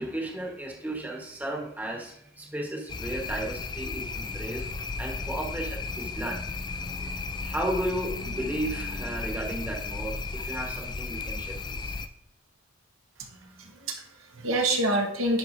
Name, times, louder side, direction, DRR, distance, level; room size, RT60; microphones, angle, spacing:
voice 1, 0.0-4.7 5.0-6.4 7.0-12.0, right 1 dB, 10° right, -1 dB, 1.2 m, -34 dB
sound 1, 2.9-12.1, left 3 dB, 20° left, 0.3 m, -34 dB
voice 2, 13.3-15.4, right 1 dB, 85° right, 3 dB, 1.1 m, -28 dB
10.5 x 4.4 x 2.6 m, 0.76 s
head